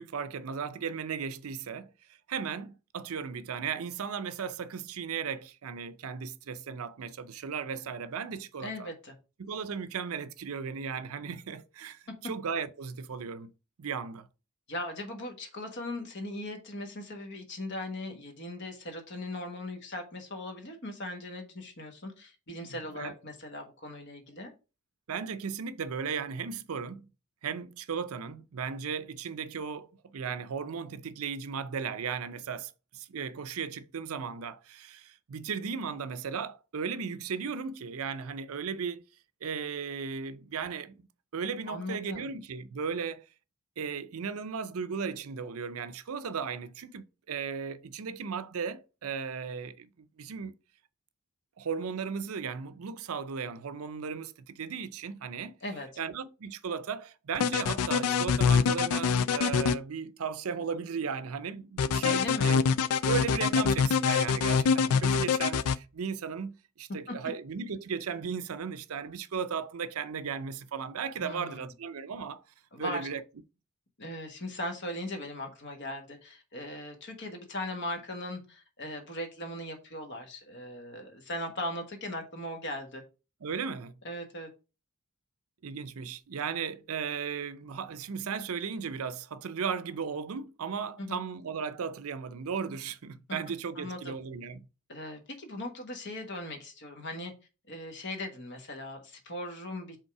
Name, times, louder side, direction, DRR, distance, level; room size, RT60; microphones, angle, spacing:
voice 1, 0.0-1.9 2.3-8.9 9.4-13.5 13.8-14.3 22.9-23.1 25.1-27.1 27.4-39.1 39.4-41.1 41.3-43.3 43.8-50.5 51.6-55.6 56.0-62.6 63.0-72.4 72.8-73.2 83.4-84.0 85.6-94.7, right 6 dB, 75° right, 0.5 m, -36 dB
voice 2, 8.6-9.1 14.7-24.5 41.7-42.3 55.6-55.9 62.0-62.6 67.1-67.2 71.2-71.7 72.7-73.1 74.0-83.0 84.0-84.5 91.0-91.2 93.7-94.1 94.9-97.3 97.7-100.0, left 1 dB, 55° left, 1.4 m, -39 dB
sound 1, 57.3-59.8 61.8-65.8, left 6 dB, 90° left, 0.4 m, -25 dB
5.3 x 3.7 x 4.8 m
head